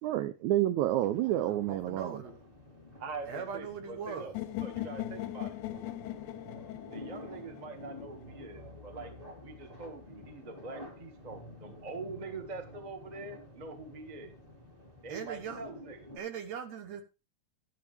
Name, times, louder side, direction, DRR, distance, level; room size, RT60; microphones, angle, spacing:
voice 1, 0.0-2.2, right 13 dB, 85° right, 11 dB, 1.7 m, -29 dB
sound 1, 1.1-16.2, left 1 dB, 15° right, 1.7 m, -50 dB
voice 2, 1.4-2.4 3.3-4.4 15.1-15.6 16.2-17.0, right 7 dB, 65° right, 8 dB, 1.7 m, -40 dB
voice 3, 3.0-5.6 6.9-9.1 9.4-14.3 15.0-16.1, right 3 dB, 35° right, 6 dB, 0.6 m, -44 dB
sound 2, 4.3-8.3, left 14 dB, 75° left, 1.9 m, -39 dB
11.5 x 10.5 x 3.4 m, 0.30 s
omnidirectional pair, 4.2 m